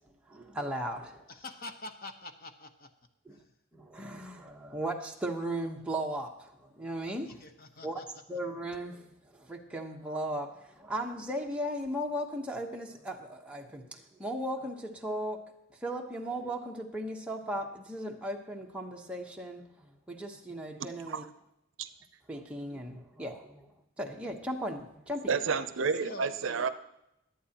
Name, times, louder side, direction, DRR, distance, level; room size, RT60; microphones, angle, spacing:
voice 1, 0.3-1.3 3.2-3.4 3.7-7.4 7.8-8.0 8.3-15.4 15.8-21.2 22.3-25.4, right 1 dB, 5° right, 0 dB, 1.0 m, -37 dB
voice 2, 1.3-2.9 3.3-3.5 7.2-8.0 26.0-26.7, left 2 dB, 50° left, 7 dB, 1.0 m, -46 dB
voice 3, 25.3-26.7, right 5 dB, 70° right, 12 dB, 0.6 m, -30 dB
21.5 x 8.7 x 2.9 m, 0.82 s
head